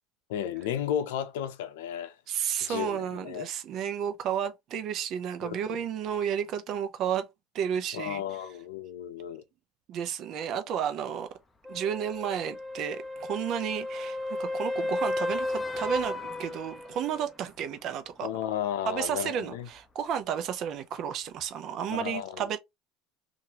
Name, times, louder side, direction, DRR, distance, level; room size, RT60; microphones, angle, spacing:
voice 1, 0.3-2.2 2.6-3.5 5.4-5.6 7.9-9.4 18.2-19.7 21.9-22.4, left 10 dB, 85° left, 0.5 m, -33 dB
voice 2, 2.3-7.3 7.5-8.2 9.9-11.3 11.7-18.3 18.9-22.6, right 8 dB, 50° right, 0.6 m, -32 dB
sound 1, 11.6-17.3 21.4-21.5, left 1 dB, 15° left, 0.6 m, -33 dB
2.9 x 2.6 x 2.8 m
supercardioid pair, 110°, 0 cm